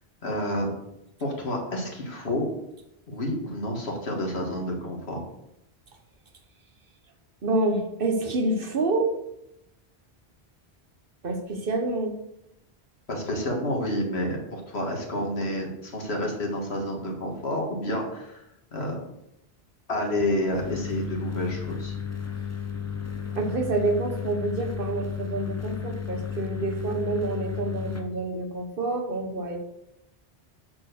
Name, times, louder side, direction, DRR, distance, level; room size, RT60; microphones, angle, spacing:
voice 1, 0.2-0.7 1.2-2.5 3.1-5.2 13.1-18.5 18.7-19.0 19.9-21.9, left 1 dB, 80° left, 0 dB, 2.2 m, -29 dB
voice 2, 7.4-9.1 11.2-12.2 23.3-29.6, right 2 dB, 60° right, 4 dB, 1.3 m, -27 dB
sound 1, 20.5-28.0, left 7 dB, 15° left, 0.7 m, -33 dB
8.4 x 4.6 x 6.6 m, 0.83 s
omnidirectional pair, 1.1 m